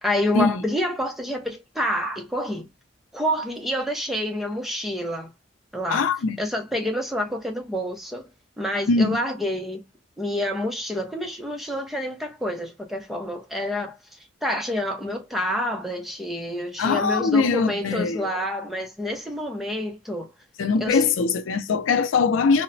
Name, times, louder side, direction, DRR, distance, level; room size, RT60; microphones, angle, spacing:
voice 1, 0.0-2.7 3.1-5.3 5.7-6.1 6.4-8.3 8.6-9.8 10.2-20.3 20.8-21.0, left 1 dB, ahead, 0.6 m, -28 dB
voice 2, 5.9-6.4 8.9-9.2 16.8-18.3 20.6-22.6, left 4 dB, 90° left, 0.4 m, -22 dB
2.9 x 2.1 x 2.5 m
head